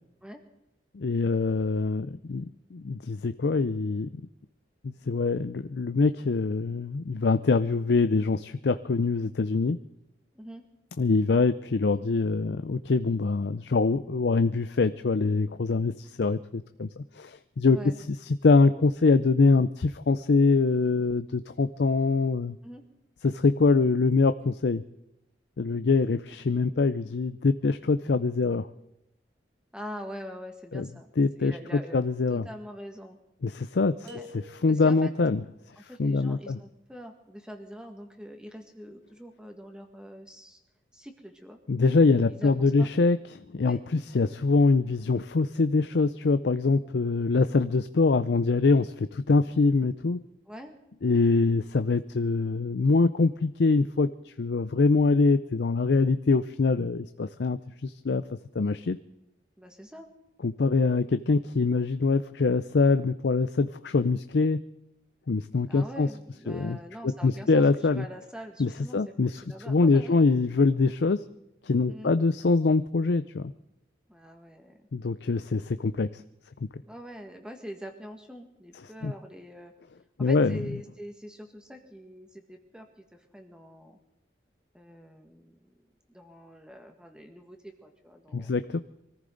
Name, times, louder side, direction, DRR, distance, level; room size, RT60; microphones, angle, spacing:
voice 1, 0.9-4.2 4.8-9.8 11.0-17.8 18.4-22.6 23.2-24.8 25.6-28.7 30.7-30.9 31.2-31.6 31.9-32.5 33.4-34.1 34.6-35.4 36.0-36.6 41.7-43.2 43.5-50.2 51.0-58.2 58.5-59.0 60.4-64.6 65.3-66.1 66.5-66.8 67.0-68.0 68.6-71.2 71.6-73.5 74.9-76.2 79.0-79.1 80.2-80.6 88.3-88.8, left 3 dB, 75° left, 11 dB, 0.5 m, -24 dB
voice 2, 17.7-18.0 22.6-22.8 29.7-31.1 31.4-32.0 32.3-33.2 34.0-34.3 34.7-35.1 35.8-40.6 40.9-41.6 42.3-42.9 43.6-43.8 50.5-50.7 59.6-60.1 65.7-67.6 67.9-70.3 71.9-72.2 74.1-74.9 76.9-79.7 80.2-84.0 84.7-85.8 86.1-88.5, equal, 5° right, 4 dB, 1.7 m, -44 dB
sound 1, 34.1-35.2, left 3 dB, 75° right, 3.4 m, -47 dB
24.0 x 14.5 x 3.9 m, 0.86 s
head